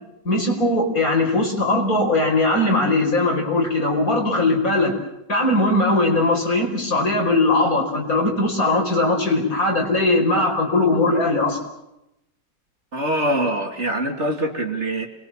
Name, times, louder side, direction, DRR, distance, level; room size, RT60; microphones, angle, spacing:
voice 1, 0.3-5.0 5.3-11.6, left 2 dB, 50° left, 2 dB, 5.4 m, -20 dB
voice 2, 12.9-15.1, right 1 dB, 40° right, 3 dB, 3.0 m, -23 dB
28.0 x 22.5 x 7.5 m, 0.86 s
omnidirectional pair, 1.9 m